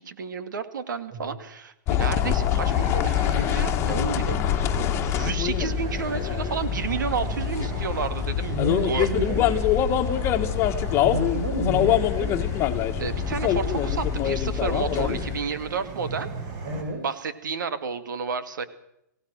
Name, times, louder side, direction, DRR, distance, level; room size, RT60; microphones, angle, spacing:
voice 1, 0.0-4.4 5.0-9.1 13.0-16.3 17.0-18.6, right 5 dB, 80° right, 11 dB, 2.5 m, -31 dB
behala westhafen, 1.9-15.4, left 10 dB, 25° left, 1.8 m, -24 dB
sound 1, 2.2-16.8, right 3 dB, 35° right, 6.7 m, -38 dB
voice 2, 8.5-9.5 11.0-12.3 16.6-17.0, right 1 dB, 60° right, 2 dB, 6.2 m, -30 dB
23.5 x 17.5 x 6.3 m, 0.80 s
hypercardioid pair, 145°, 10 cm